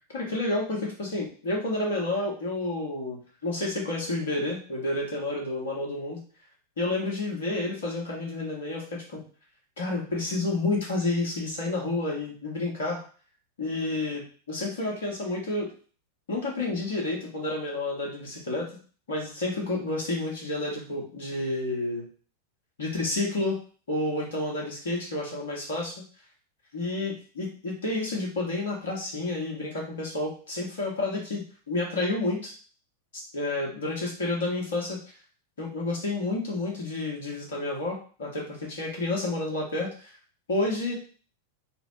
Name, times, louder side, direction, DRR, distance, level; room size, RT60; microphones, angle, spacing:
voice 1, 0.1-6.2 6.8-9.2 9.8-13.0 13.6-14.2 14.5-15.7 16.3-18.7 19.1-22.1 22.8-23.6 23.9-25.9 26.7-32.5 33.1-35.0 35.6-40.1 40.5-41.0, left 2 dB, 65° left, -2 dB, 1.3 m, -30 dB
4.0 x 2.1 x 3.1 m, 0.40 s
figure-of-eight pair, 90°, 0 cm